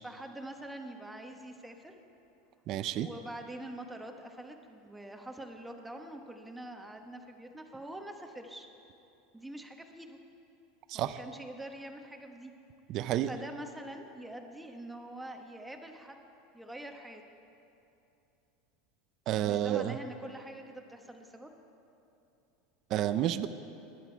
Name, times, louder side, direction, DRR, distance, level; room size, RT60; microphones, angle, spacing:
voice 1, 0.0-1.9 2.8-8.7 9.3-10.2 10.9-12.5 13.2-16.2 16.5-17.2 19.4-21.5, right 1 dB, 5° right, 4 dB, 1.2 m, -45 dB
voice 2, 2.7-3.1 10.9-11.2 12.9-13.3 19.3-20.0 22.9-23.5, right 12 dB, 45° right, 11 dB, 0.5 m, -30 dB
22.5 x 11.0 x 4.6 m, 2.8 s
supercardioid pair, 140°, 0 cm